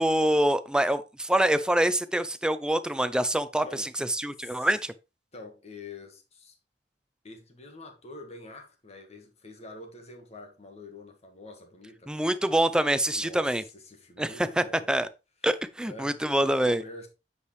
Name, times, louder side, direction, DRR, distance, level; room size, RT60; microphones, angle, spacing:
voice 1, 0.0-3.9 4.2-4.9 12.1-13.6 14.2-14.3 14.6-15.1 15.4-16.8, right 1 dB, 5° right, 0.4 m, -25 dB
voice 2, 3.6-3.9 4.4-4.7 5.3-6.6 7.2-12.2 13.1-15.0 15.4-15.5 15.8-16.2 16.5-17.1, left 2 dB, 35° left, 1.6 m, -46 dB
8.2 x 4.9 x 3.2 m
head